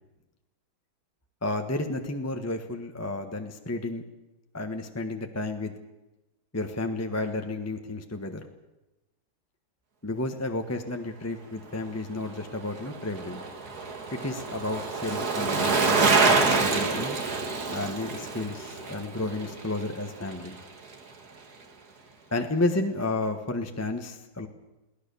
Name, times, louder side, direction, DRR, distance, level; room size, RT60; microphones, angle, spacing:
voice 1, 1.4-4.0 4.5-5.7 6.5-8.5 10.0-13.4 14.1-17.2 17.7-20.6 22.3-24.5, left 2 dB, 10° left, 5 dB, 1.0 m, -32 dB
Bicycle, 12.2-20.6 20.9-21.0, right 4 dB, 50° right, 2.4 m, -27 dB
22.0 x 17.5 x 7.0 m, 1.0 s
omnidirectional pair, 2.2 m